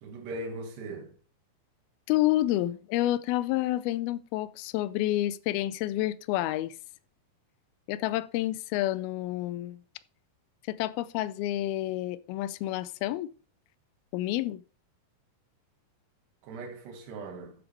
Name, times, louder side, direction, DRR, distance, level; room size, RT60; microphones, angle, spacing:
voice 1, 0.0-1.1 16.4-17.5, right 2 dB, 85° right, 3.9 m, -39 dB
voice 2, 2.1-6.8 7.9-9.8 10.7-13.3 14.1-14.6, left 15 dB, 80° left, 2.3 m, -29 dB
13.0 x 7.4 x 3.4 m
omnidirectional pair, 4.7 m